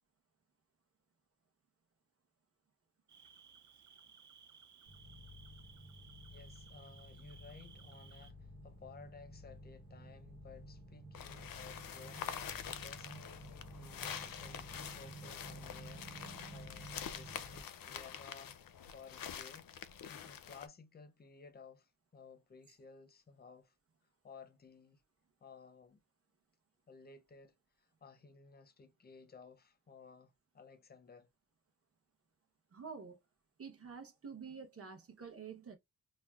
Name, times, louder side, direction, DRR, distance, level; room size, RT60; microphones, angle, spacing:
Cricket, 3.1-8.3, right 6 dB, 60° right, 0.5 m, -60 dB
sound 1, 4.9-17.6, right 1 dB, 85° right, 1.1 m, -53 dB
voice 1, 6.3-23.8 24.2-25.0 25.4-26.0 26.9-31.3, left 5 dB, 30° left, 0.5 m, -57 dB
sound 2, 11.1-20.7, left 8 dB, 85° left, 0.5 m, -46 dB
voice 2, 32.7-33.2 33.6-35.8, right 6 dB, 45° right, 0.9 m, -48 dB
5.9 x 2.1 x 2.3 m
wide cardioid pair, 160°, 33 cm